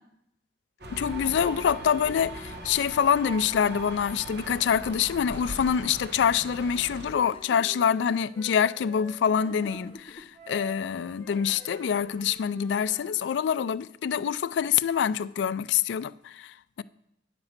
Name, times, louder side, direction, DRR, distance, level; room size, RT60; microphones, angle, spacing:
sound 1, 0.8-7.1, right 2 dB, 65° right, 1.2 m, -40 dB
voice 1, 0.9-16.8, left 8 dB, 70° left, 0.3 m, -26 dB
Wind instrument woodwind instrument, 6.7-9.8 10.3-13.6, right 1 dB, 45° right, 4.0 m, -49 dB
sound 2, 7.0-7.7 9.3-10.2 11.1-12.4, left 1 dB, 30° left, 0.8 m, -47 dB
8.8 x 6.0 x 7.2 m
head